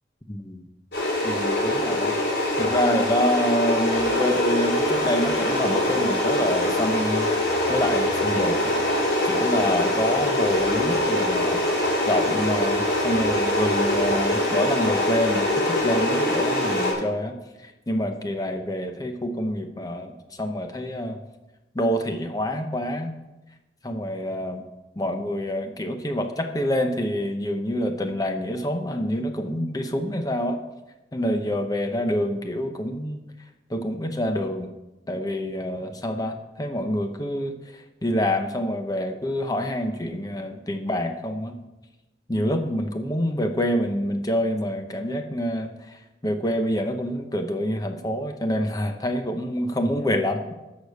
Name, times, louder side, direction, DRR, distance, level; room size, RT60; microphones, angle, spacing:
voice 1, 0.3-0.6 1.2-2.2 2.6-8.8 9.2-11.7 12.1-21.2 21.7-23.2 23.8-24.6 25.0-30.6 31.1-33.2 33.7-34.7 35.1-41.6 42.3-50.5, equal, 20° left, 6 dB, 0.8 m, -27 dB
sound 1, 0.9-16.9, left 1 dB, 70° left, 4.5 m, -23 dB
13.0 x 5.0 x 6.9 m, 1.0 s
head